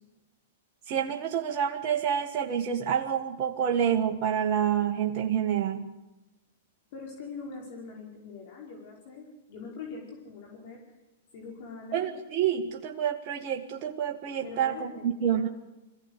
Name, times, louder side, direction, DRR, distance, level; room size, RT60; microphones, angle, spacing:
voice 1, 0.9-5.9 11.9-15.5, right 8 dB, 45° right, 3 dB, 1.5 m, -28 dB
voice 2, 6.9-10.8 11.3-12.0 14.4-15.1 15.3-15.5, left 4 dB, 55° left, 0 dB, 5.5 m, -43 dB
23.0 x 16.0 x 8.4 m, 1.0 s
hypercardioid pair, 115°, 0 cm